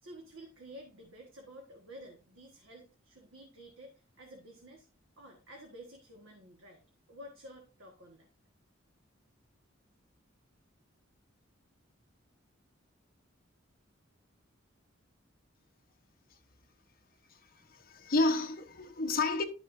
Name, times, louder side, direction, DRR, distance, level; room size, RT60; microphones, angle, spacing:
voice 1, 0.0-4.9 5.2-6.8 7.1-8.3, equal, 85° right, 1.6 m, -51 dB
voice 2, 17.3-19.4, left 2 dB, 45° left, 1.1 m, -31 dB
11.5 x 6.4 x 2.7 m
head